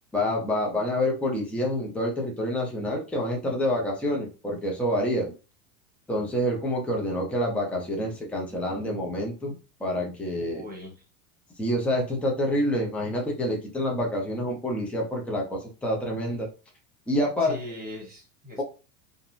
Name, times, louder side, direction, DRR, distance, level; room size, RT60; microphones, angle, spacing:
voice 1, 0.1-5.3 6.1-10.6 11.6-16.5 17.1-17.6, left 1 dB, 5° left, -1 dB, 0.6 m, -27 dB
voice 2, 10.4-11.0 13.0-13.1 17.4-18.6, left 1 dB, 20° right, -1 dB, 1.1 m, -40 dB
2.6 x 2.2 x 2.5 m, 0.32 s
supercardioid pair, 110°, 42 cm